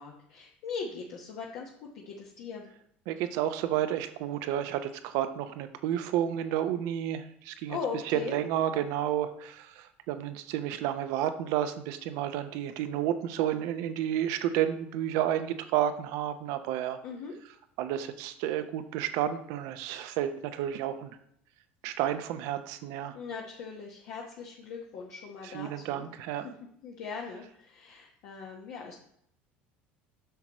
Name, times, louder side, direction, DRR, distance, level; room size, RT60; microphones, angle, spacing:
voice 1, 0.0-2.7 7.7-8.4 17.0-17.3 23.1-26.1 26.4-26.5 26.8-28.9, left 5 dB, 65° left, -2 dB, 1.1 m, -40 dB
voice 2, 3.1-7.8 8.1-17.0 17.8-21.2 21.8-23.2 25.5-26.4, right 11 dB, 70° right, 10 dB, 0.7 m, -31 dB
8.0 x 6.0 x 3.0 m, 0.68 s
hypercardioid pair, 80°, 6 cm